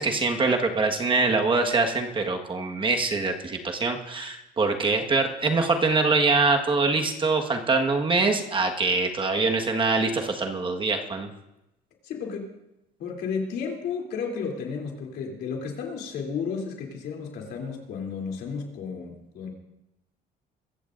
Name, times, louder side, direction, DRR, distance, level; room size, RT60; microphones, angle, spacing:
voice 1, 0.0-11.3, right 3 dB, 30° right, 3 dB, 1.6 m, -24 dB
voice 2, 12.0-12.5 13.0-19.5, left 5 dB, 75° left, 1 dB, 3.3 m, -33 dB
23.0 x 14.5 x 2.6 m, 0.89 s
cardioid pair, 110°, 17 cm